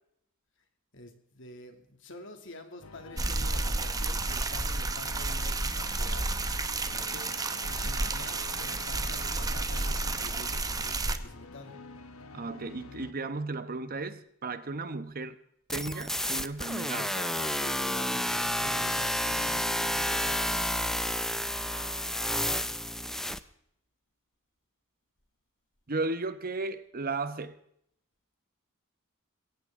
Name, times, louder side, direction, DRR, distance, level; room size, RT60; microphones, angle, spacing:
voice 1, 0.9-6.4 6.9-7.3 7.6-11.7 16.8-21.3, left 2 dB, 60° left, 2.6 m, -47 dB
sound 1, 2.8-13.1, left 4 dB, 85° left, 1.4 m, -47 dB
sound 2, 3.2-11.2, right 2 dB, 15° right, 0.9 m, -31 dB
voice 2, 12.3-15.4 15.7-17.1 21.7-22.1 25.9-27.5, right 3 dB, 45° right, 1.0 m, -35 dB
sound 3, 15.7-23.4, left 1 dB, ahead, 0.6 m, -30 dB
21.5 x 17.5 x 3.7 m
head